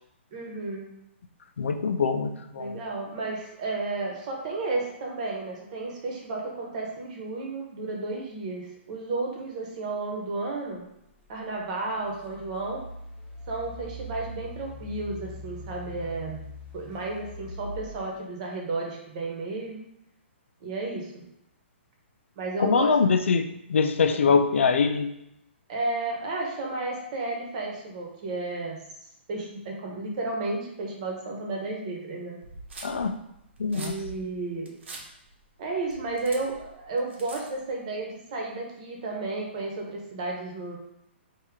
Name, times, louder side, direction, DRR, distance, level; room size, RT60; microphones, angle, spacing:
voice 1, 0.3-0.9 2.6-10.8 11.3-12.8 13.5-16.4 16.7-19.9 20.6-21.3 22.4-23.0 24.1-24.4 25.7-28.8 29.3-32.4 33.7-34.7 35.6-40.8, right 3 dB, 35° right, 0 dB, 1.0 m, -32 dB
voice 2, 1.6-2.7 22.6-25.1 32.8-33.2 33.6-33.9, left 5 dB, 90° left, 9 dB, 0.5 m, -23 dB
Engine, 11.5-11.6 12.2-18.1, equal, 20° right, 0.7 m, -42 dB
sound 1, 32.4-37.7, right 3 dB, 70° right, 1.0 m, -44 dB
3.6 x 2.9 x 4.6 m, 0.81 s
hypercardioid pair, 165°, 7 cm